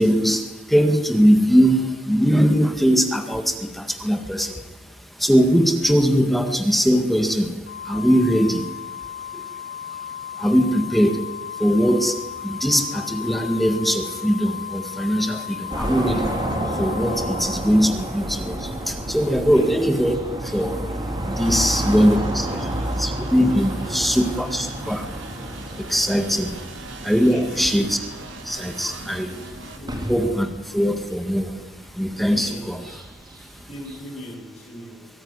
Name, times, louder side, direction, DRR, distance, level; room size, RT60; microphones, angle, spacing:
voice 1, 0.0-22.7 23.0-28.0 28.4-29.8 30.1-32.8 33.4-33.7, equal, ahead, 6 dB, 1.8 m, -21 dB
Organ, 7.7-18.4, left 9 dB, 55° left, 1.1 m, -35 dB
sound 1, 15.7-34.0, right 1 dB, 25° right, 3.5 m, -31 dB
voice 2, 19.4-20.0 21.5-22.9 23.6-24.4 26.6-26.7 27.2-27.8 29.7-30.1 32.3-32.7 33.7-35.1, left 1 dB, 35° left, -4 dB, 7.6 m, -38 dB
sound 2, 21.4-29.8, right 2 dB, 75° right, 2.6 m, -40 dB
23.5 x 15.5 x 9.7 m, 1.1 s
head